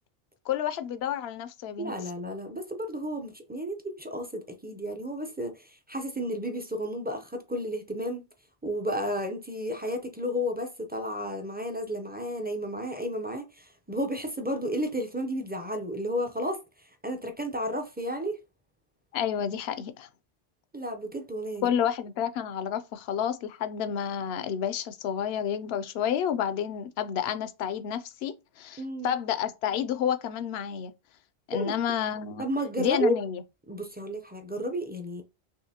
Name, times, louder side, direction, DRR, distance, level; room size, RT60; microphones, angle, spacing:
voice 1, 0.5-1.9 19.1-20.1 21.6-30.9 31.5-32.5 32.8-33.4, left 9 dB, 70° left, 0.8 m, -30 dB
voice 2, 1.8-8.2 8.6-16.6 17.0-18.4 20.7-21.7 28.8-29.1 31.5-31.8 32.4-33.2 33.7-35.2, equal, 10° right, 0.4 m, -32 dB
6.4 x 2.6 x 2.8 m
omnidirectional pair, 1.2 m